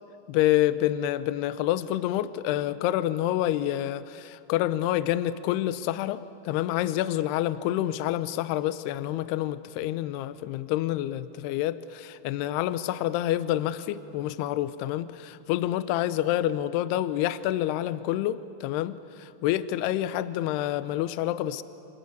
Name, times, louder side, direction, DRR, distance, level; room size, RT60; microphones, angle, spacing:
voice 1, 0.3-21.6, left 13 dB, 90° left, 14 dB, 2.3 m, -28 dB
27.5 x 18.0 x 9.6 m, 2.6 s
omnidirectional pair, 5.6 m